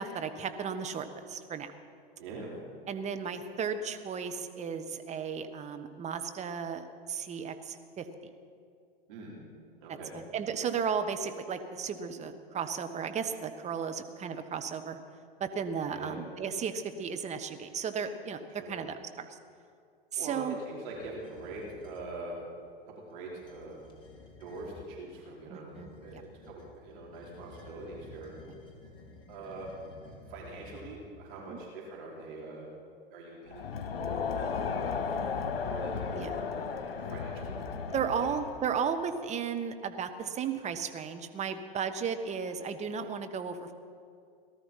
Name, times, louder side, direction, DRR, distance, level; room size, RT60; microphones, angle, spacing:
voice 1, 0.0-1.7 2.9-8.1 9.9-10.0 10.3-15.0 15.4-18.4 18.7-19.4 20.1-20.6 25.5-26.2 31.5-31.6 36.1-36.3 37.9-43.7, right 6 dB, 25° right, 8 dB, 1.2 m, -34 dB
voice 2, 2.2-2.5 9.1-9.3 9.8-10.1 15.9-16.2 18.6-18.8 20.2-22.4 23.1-23.8 24.4-25.8 26.0-28.3 29.3-29.7 30.0-32.7 33.1-33.7 34.0-35.0 35.6-36.7 37.0-38.1 38.5-38.6, right 2 dB, 55° right, -3 dB, 5.2 m, -43 dB
sound 1, 20.8-22.1 23.3-24.9 25.7-31.2, left 3 dB, 15° left, 2.9 m, -53 dB
Crowd, 33.5-38.7, left 5 dB, 70° left, 1.7 m, -34 dB
18.5 x 13.0 x 5.8 m, 2.4 s
hypercardioid pair, 110°, 30 cm